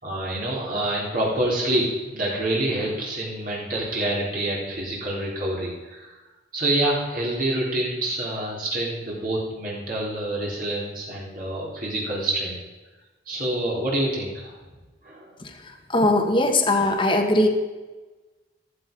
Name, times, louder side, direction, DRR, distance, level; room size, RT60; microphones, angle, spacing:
voice 1, 0.0-6.2 6.5-12.6 13.3-14.5 15.0-15.3, right 1 dB, 50° right, -4 dB, 3.7 m, -27 dB
voice 2, 15.9-17.5, left 2 dB, 25° left, 4 dB, 1.5 m, -20 dB
14.5 x 13.5 x 5.3 m, 1.2 s
head